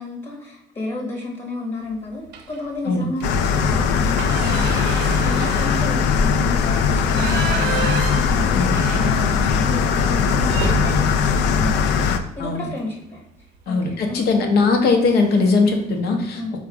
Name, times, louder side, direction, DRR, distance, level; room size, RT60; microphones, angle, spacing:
voice 1, 0.0-13.2 13.7-14.3 16.3-16.5, left 2 dB, 30° left, -1 dB, 0.9 m, -31 dB
sound 1, 2.3-2.7 3.1-3.2 3.6-9.7 10.0-10.1 10.5-12.6 14.0-14.2 14.6-14.8 15.0-15.7, right 6 dB, 80° right, 0.5 m, -31 dB
sound 2, 3.2-12.2, left 6 dB, 85° left, 0.4 m, -19 dB
voice 2, 13.7-16.4, left 3 dB, 70° left, 4 dB, 0.9 m, -19 dB
3.9 x 2.4 x 4.6 m, 0.80 s
cardioid pair, 110°, 17 cm